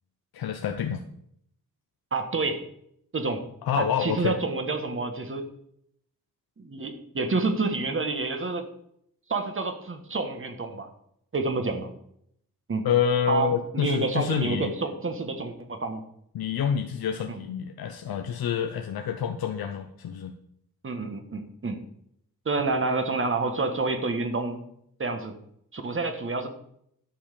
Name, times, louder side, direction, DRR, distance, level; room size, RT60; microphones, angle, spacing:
voice 1, 0.3-1.0 3.6-4.4 12.8-14.7 16.3-20.3, left 8 dB, 85° left, 5 dB, 0.8 m, -27 dB
voice 2, 2.1-2.6 3.1-3.4 3.8-5.5 6.6-8.6 9.3-10.9 11.3-11.9 12.7-12.9 13.3-16.0 20.8-21.8 22.4-24.6 25.0-25.4 25.7-26.5, right 3 dB, 35° right, 7 dB, 1.4 m, -28 dB
11.5 x 5.5 x 6.6 m, 0.71 s
wide cardioid pair, 130°, 36 cm